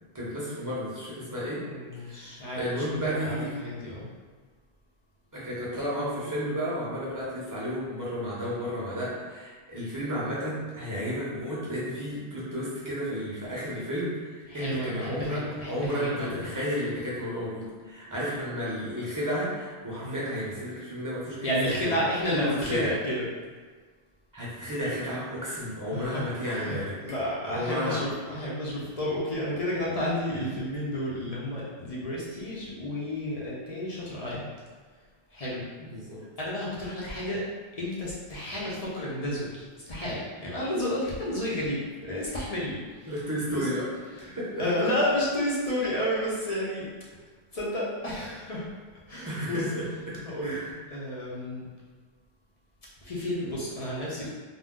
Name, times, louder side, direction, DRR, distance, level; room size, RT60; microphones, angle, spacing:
voice 1, 0.1-1.6 2.0-3.5 5.3-22.0 22.3-22.9 24.3-26.9 27.5-28.0 35.8-36.2 43.1-44.8 49.2-50.7 53.8-53.9, equal, 20° right, -8 dB, 0.7 m, -32 dB
voice 2, 1.6-4.1 14.5-16.5 20.0-20.2 21.4-23.2 25.9-26.8 27.1-34.5 35.3-35.7 36.4-37.4 37.8-43.1 43.5-43.7 44.2-46.8 47.5-48.7 49.1-49.6 50.2-50.6 50.9-51.6 53.0-54.3, left 1 dB, 45° left, -7 dB, 0.6 m, -31 dB
2.5 x 2.1 x 3.6 m, 1.5 s
omnidirectional pair, 1.1 m